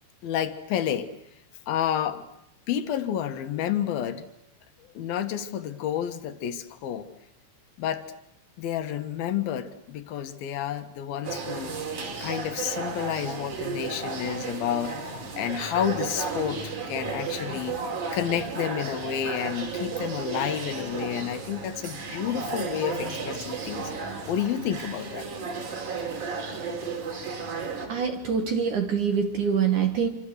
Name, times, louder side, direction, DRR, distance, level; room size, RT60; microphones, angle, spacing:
voice 1, 0.2-1.1 1.7-2.2 2.7-4.3 4.9-7.1 7.8-8.0 8.6-11.8 12.2-23.9 24.3-25.3, left 9 dB, 65° left, 9 dB, 2.8 m, -30 dB
sound 1, 11.2-27.9, right 4 dB, 45° right, 4.8 m, -34 dB
voice 2, 27.9-30.1, right 7 dB, 60° right, 7 dB, 2.1 m, -25 dB
27.5 x 26.0 x 8.0 m, 0.77 s
omnidirectional pair, 5.6 m